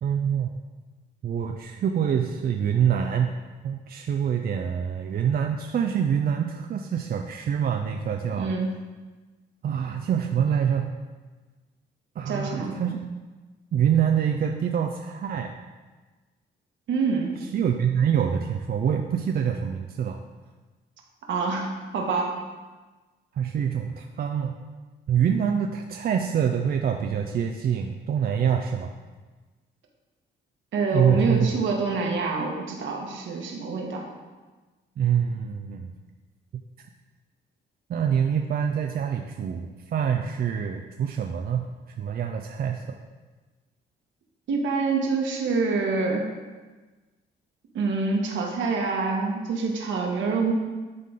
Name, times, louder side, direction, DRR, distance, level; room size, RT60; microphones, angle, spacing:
voice 1, 0.0-0.5 1.2-3.3 3.6-8.5 9.6-10.9 12.2-13.0 13.7-15.5 17.5-20.2 23.4-24.5 25.1-28.9 30.9-31.5 35.0-35.9 37.9-41.7 42.0-43.0, right 8 dB, 50° right, 4 dB, 0.5 m, -25 dB
voice 2, 8.4-8.7 12.3-12.8 16.9-17.4 21.3-22.3 30.7-34.0 44.5-46.3 47.7-50.5, right 4 dB, 75° right, 0 dB, 1.4 m, -26 dB
11.5 x 3.9 x 3.7 m, 1.3 s
cardioid pair, 90°, 20 cm